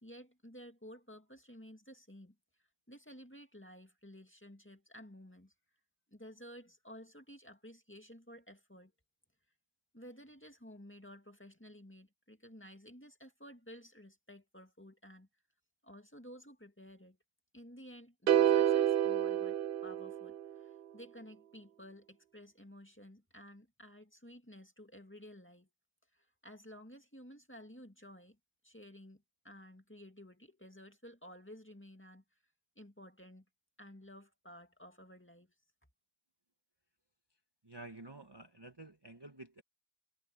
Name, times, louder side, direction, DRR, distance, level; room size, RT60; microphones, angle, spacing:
voice 1, 0.0-5.5 6.1-8.9 9.9-15.3 15.8-17.2 17.5-25.7 26.1-28.4 28.6-32.2 32.8-33.5 33.8-35.5, equal, 10° left, 2.2 m, -54 dB
sound 1, 18.3-20.6, right 10 dB, 60° right, 0.7 m, -29 dB
voice 2, 37.6-39.6, right 2 dB, 20° right, 1.2 m, -50 dB
omnidirectional pair, 1.3 m